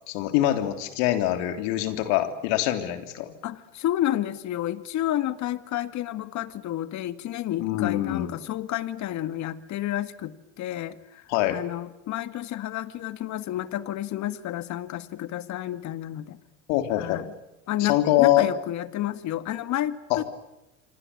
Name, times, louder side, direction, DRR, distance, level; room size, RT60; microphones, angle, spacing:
voice 1, 0.1-3.4 7.6-8.3 11.3-11.6 16.7-17.2 17.8-18.5 20.1-20.2, left 14 dB, 70° left, 7 dB, 3.5 m, -24 dB
voice 2, 3.4-11.2 11.5-16.4 16.9-17.3 17.7-20.2, left 13 dB, 50° left, 12 dB, 1.9 m, -30 dB
27.5 x 25.0 x 8.6 m, 0.93 s
hypercardioid pair, 85°, 37 cm